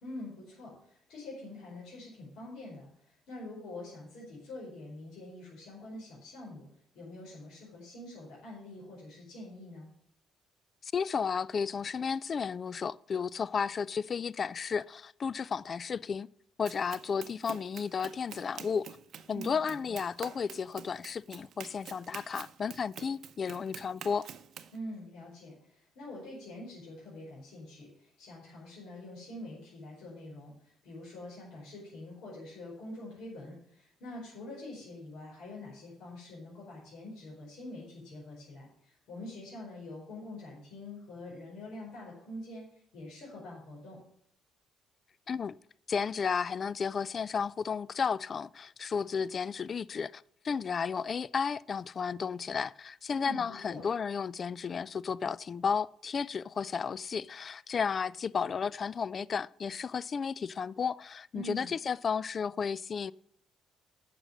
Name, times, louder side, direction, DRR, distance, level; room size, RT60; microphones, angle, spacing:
voice 1, 0.0-6.6 6.9-9.9 19.3-20.0 24.7-42.6 42.9-44.0 53.1-53.8 61.3-61.7, left 1 dB, 80° left, 4.6 m, -45 dB
voice 2, 10.8-16.3 16.6-18.9 19.3-24.3 45.3-45.6 45.9-63.1, left 6 dB, 40° left, 0.3 m, -33 dB
Run, 16.6-24.8, right 9 dB, 65° right, 0.7 m, -48 dB
9.8 x 6.4 x 6.6 m
cardioid pair, 100°, 0 cm